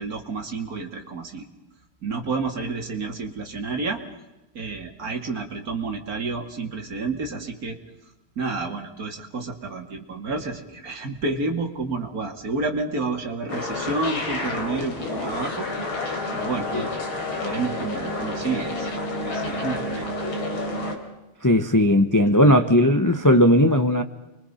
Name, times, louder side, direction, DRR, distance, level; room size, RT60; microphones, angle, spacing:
voice 1, 0.0-1.5 2.0-4.0 4.5-7.8 8.4-16.9 17.4-18.9 19.2-20.1, right 3 dB, 45° right, 4 dB, 2.8 m, -30 dB
sound 1, 13.5-21.0, left 2 dB, 75° left, 4.5 m, -29 dB
voice 2, 21.4-24.0, equal, 20° left, 7 dB, 0.6 m, -17 dB
29.5 x 23.5 x 5.7 m, 1.0 s
omnidirectional pair, 2.3 m